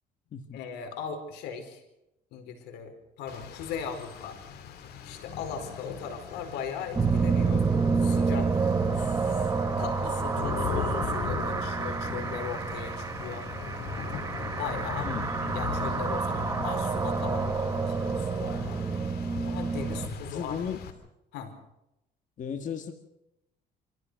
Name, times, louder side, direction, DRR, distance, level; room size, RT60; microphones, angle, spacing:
voice 1, 0.5-1.8 2.3-4.4 5.0-7.6 8.0-9.5 9.8-13.5 14.6-15.1 15.4-18.8 19.4-20.6 21.3-21.5, left 7 dB, 90° left, 6 dB, 5.0 m, -38 dB
Rain, 3.3-20.9, left 7 dB, 70° left, 3.5 m, -39 dB
sound 1, 6.9-20.1, right 4 dB, 20° right, 1.6 m, -29 dB
voice 2, 15.0-15.4 20.3-20.9 22.4-22.9, left 7 dB, 50° left, 6 dB, 1.9 m, -35 dB
27.0 x 15.5 x 6.5 m, 0.88 s
cardioid pair, 110°, 17 cm